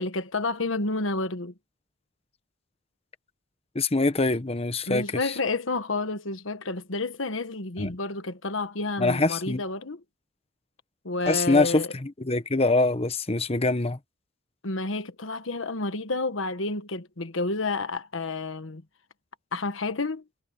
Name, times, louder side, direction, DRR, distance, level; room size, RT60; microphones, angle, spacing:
voice 1, 0.0-1.5 4.9-10.0 11.0-11.9 14.6-18.8 19.5-20.2, left 3 dB, 75° left, 1.4 m, -30 dB
voice 2, 3.7-5.3 7.8-7.9 9.0-9.6 11.3-14.0, left 2 dB, 30° left, 1.1 m, -24 dB
head